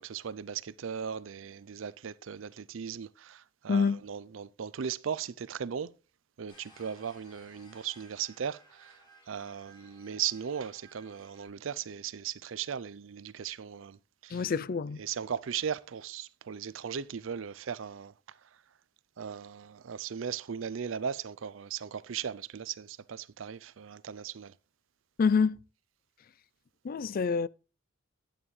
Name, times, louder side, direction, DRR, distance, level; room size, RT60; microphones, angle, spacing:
voice 1, 0.0-5.9 6.4-9.0 9.3-14.5 15.0-18.1 19.2-24.5, right 8 dB, 80° right, 0.5 m, -37 dB
voice 2, 3.7-4.0 14.3-15.0 25.2-25.6 26.8-27.5, left 5 dB, 45° left, 0.4 m, -27 dB
sound 1, 6.5-11.5, right 1 dB, 25° left, 5.8 m, -59 dB
11.0 x 8.9 x 3.2 m
head